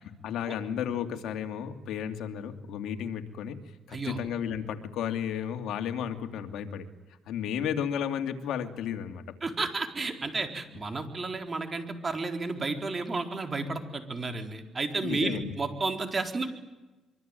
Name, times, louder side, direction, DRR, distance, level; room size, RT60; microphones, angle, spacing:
voice 1, 0.0-3.6 3.9-6.9 7.3-9.2 15.0-15.5, left 8 dB, 85° left, 6 dB, 2.5 m, -33 dB
voice 2, 9.4-16.5, right 3 dB, 30° right, 5 dB, 4.3 m, -32 dB
25.0 x 24.0 x 9.2 m, 1.1 s
cardioid pair, 90°, 0 cm